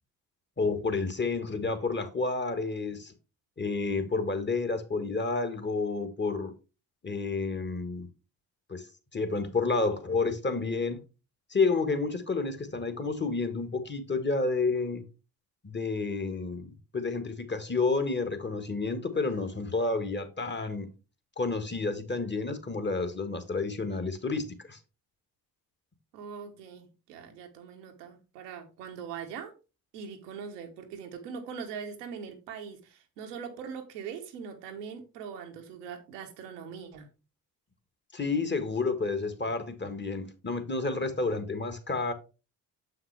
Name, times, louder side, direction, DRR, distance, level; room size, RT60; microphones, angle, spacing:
voice 1, 0.6-3.1 3.6-6.5 7.0-8.1 8.7-8.9 9.1-11.0 11.5-15.0 15.6-20.9 21.4-24.8 38.1-42.1, left 3 dB, 25° left, 1.5 m, -30 dB
voice 2, 26.1-29.5 29.9-37.1, right 6 dB, 85° right, 1.2 m, -41 dB
7.2 x 5.8 x 3.4 m
hypercardioid pair, 45°, 46 cm